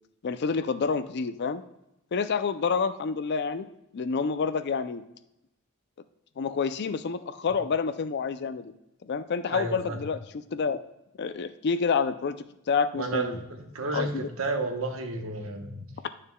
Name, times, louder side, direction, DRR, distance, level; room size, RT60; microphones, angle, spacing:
voice 1, 0.2-1.6 2.1-3.7 3.9-5.0 6.4-8.7 9.0-10.8 11.2-12.4 12.7-13.4 13.9-14.3, left 5 dB, 50° left, 12 dB, 0.4 m, -28 dB
voice 2, 9.5-10.0 12.9-15.9, right 2 dB, 70° right, 4 dB, 1.0 m, -31 dB
9.3 x 6.5 x 2.2 m, 0.86 s
head